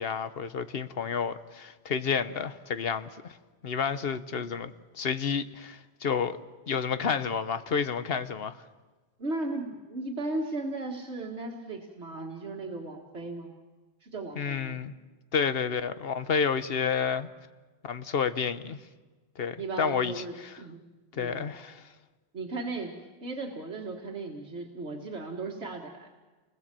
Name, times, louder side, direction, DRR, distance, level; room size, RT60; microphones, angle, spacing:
voice 1, 0.0-3.4 3.6-6.4 6.7-8.6 14.4-14.9 15.3-17.3 17.8-18.8 19.4-20.5 21.1-21.8, left 6 dB, 60° left, 1.2 m, -30 dB
voice 2, 9.2-13.5 14.0-14.8 19.6-20.8 21.1-21.4 22.3-22.9 23.2-26.1, right 2 dB, 80° right, 2.1 m, -36 dB
29.5 x 20.5 x 7.6 m
omnidirectional pair, 1.1 m